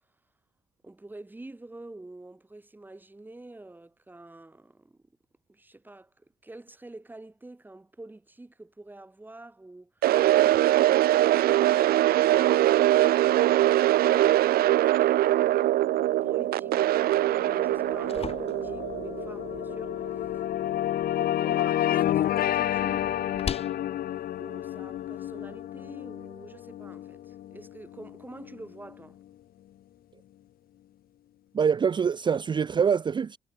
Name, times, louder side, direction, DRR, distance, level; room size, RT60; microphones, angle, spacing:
voice 1, 0.8-5.0 5.5-15.6 16.2-20.5 21.1-23.9 24.4-29.2, right 2 dB, 10° right, 6.3 m, -47 dB
sound 1, 10.0-20.1, right 14 dB, 80° right, 0.6 m, -22 dB
sound 2, 16.2-28.8, left 12 dB, 75° left, 1.5 m, -31 dB
sound 3, 17.7-25.6, left 6 dB, 40° left, 4.2 m, -43 dB
voice 2, 31.5-33.4, right 6 dB, 30° right, 0.6 m, -24 dB
cardioid pair, 140°, 15 cm